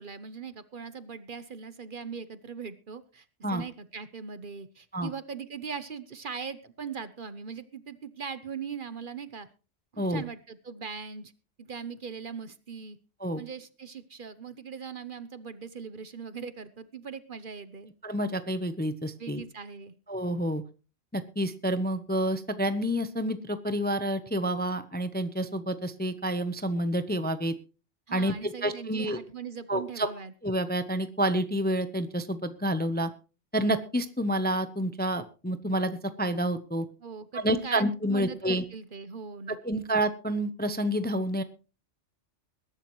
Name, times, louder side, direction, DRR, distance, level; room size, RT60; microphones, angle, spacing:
voice 1, 0.0-9.5 9.9-11.3 11.6-13.0 13.3-17.9 19.2-19.9 28.1-30.3 37.0-39.8, right 6 dB, 45° right, 14 dB, 1.0 m, -40 dB
voice 2, 18.0-19.4 20.1-20.6 21.1-27.5 28.1-29.2 29.7-30.1 30.4-33.1 33.5-36.9 37.3-38.6 39.5-41.4, right 1 dB, 10° left, 11 dB, 0.6 m, -29 dB
21.5 x 12.0 x 3.1 m, 0.34 s
omnidirectional pair, 1.3 m